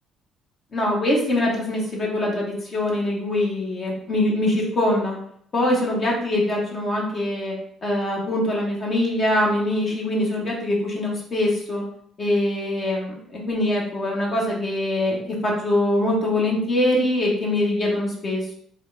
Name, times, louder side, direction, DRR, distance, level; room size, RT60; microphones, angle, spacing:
voice 1, 0.7-5.2 5.5-7.6 7.8-11.9 12.2-18.5, left 1 dB, 45° left, -2 dB, 1.0 m, -23 dB
3.4 x 2.4 x 3.4 m, 0.67 s
hypercardioid pair, 60°, 0 cm